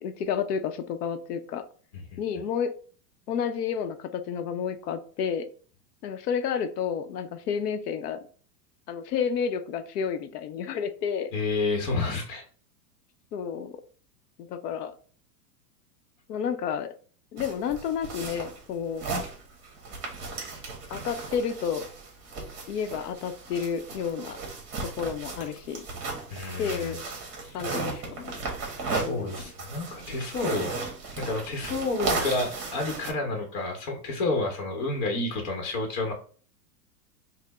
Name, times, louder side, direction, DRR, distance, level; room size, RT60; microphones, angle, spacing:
voice 1, 0.0-1.6 2.2-2.8 3.3-5.5 6.0-8.2 8.9-11.3 13.3-13.8 14.4-14.9 16.3-16.9 17.3-19.0 20.9-21.9 22.7-24.4 24.8-25.8 26.6-27.0 27.5-28.5 28.9-29.4, left 7 dB, 70° left, 9 dB, 0.7 m, -31 dB
voice 2, 11.3-12.4 26.3-27.0 27.4-27.7 28.8-30.8 31.2-36.1, left 3 dB, 40° left, 2 dB, 0.9 m, -30 dB
sound 1, 17.4-33.1, right 3 dB, 25° right, 1.3 m, -35 dB
4.2 x 2.1 x 4.0 m, 0.42 s
supercardioid pair, 160°, 49 cm